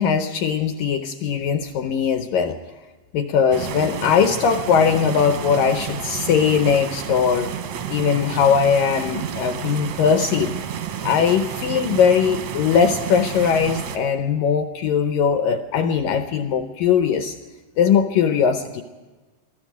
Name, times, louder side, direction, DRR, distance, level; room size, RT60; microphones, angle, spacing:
voice 1, 0.0-2.6 3.1-7.5 7.9-10.6 11.0-17.4 17.8-18.8, left 7 dB, 80° left, 7 dB, 2.0 m, -20 dB
sound 1, 3.5-14.0, right 8 dB, 80° right, 1.6 m, -31 dB
21.0 x 14.0 x 9.2 m, 1.3 s
omnidirectional pair, 4.8 m